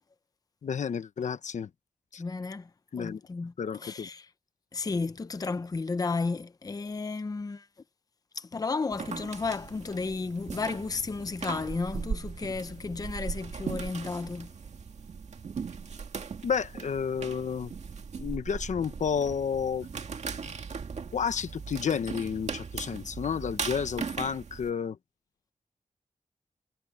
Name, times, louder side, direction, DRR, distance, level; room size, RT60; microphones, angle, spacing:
voice 1, 0.6-1.7 2.1-2.2 2.9-3.2 3.6-4.1 16.4-17.7 18.2-19.9 20.4-20.5 21.1-25.0, left 7 dB, 75° left, 1.1 m, -31 dB
voice 2, 2.2-2.7 3.0-4.3 4.7-7.7 8.4-14.5, left 4 dB, 30° left, 0.7 m, -33 dB
sound 1, 8.9-24.7, right 5 dB, 65° right, 2.0 m, -39 dB
wide cardioid pair, 135°, 12 cm